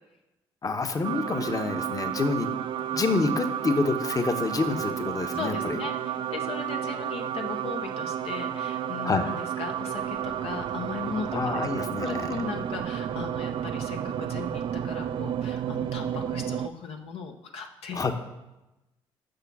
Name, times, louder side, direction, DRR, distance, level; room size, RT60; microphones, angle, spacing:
voice 1, 0.6-2.5 2.9-5.8 9.0-9.3 11.3-12.3 17.9-18.1, left 3 dB, 35° left, 7 dB, 1.0 m, -27 dB
sound 1, 1.0-16.7, right 10 dB, 55° right, 0.3 m, -31 dB
voice 2, 5.3-11.3 11.5-18.0, left 5 dB, 70° left, 4 dB, 0.8 m, -37 dB
6.6 x 5.8 x 5.9 m, 0.98 s
supercardioid pair, 60°, 10 cm